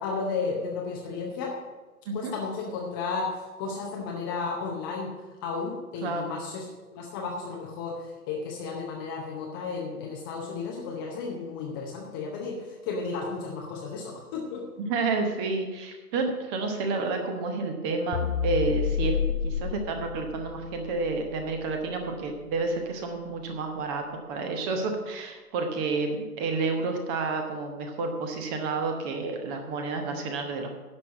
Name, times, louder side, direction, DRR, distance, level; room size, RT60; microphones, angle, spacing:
voice 1, 0.0-1.6 2.1-5.1 5.4-14.7, left 4 dB, 15° left, 0 dB, 0.7 m, -33 dB
voice 2, 14.8-19.2 19.4-24.0 24.3-30.8, right 3 dB, 15° right, 5 dB, 0.8 m, -30 dB
sound 1, 18.1-22.6, left 8 dB, 75° left, 0.7 m, -31 dB
10.5 x 6.0 x 7.3 m, 1.2 s
figure-of-eight pair, 130°, 46 cm